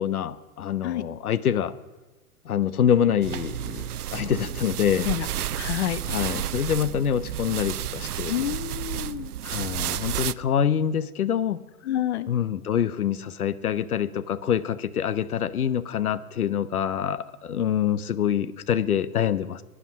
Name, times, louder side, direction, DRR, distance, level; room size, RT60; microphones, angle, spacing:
voice 1, 0.0-1.7 2.4-5.1 6.1-8.3 9.4-11.6 12.3-19.6, left 9 dB, 75° left, 15 dB, 0.9 m, -25 dB
sound 1, 3.2-10.3, right 11 dB, 80° right, 0.6 m, -31 dB
voice 2, 5.6-6.0 8.3-9.3 11.8-12.3, left 12 dB, 50° left, 15 dB, 0.8 m, -28 dB
17.5 x 9.9 x 6.2 m, 1.2 s
figure-of-eight pair, 115°, 45 cm